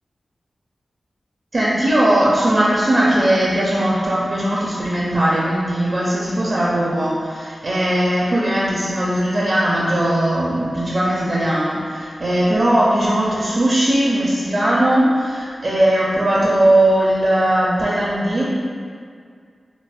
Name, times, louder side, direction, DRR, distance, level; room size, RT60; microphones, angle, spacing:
voice 1, 1.5-18.4, right 1 dB, 45° right, -6 dB, 0.4 m, -18 dB
4.8 x 2.0 x 2.4 m, 2.1 s
wide cardioid pair, 120°, 0 cm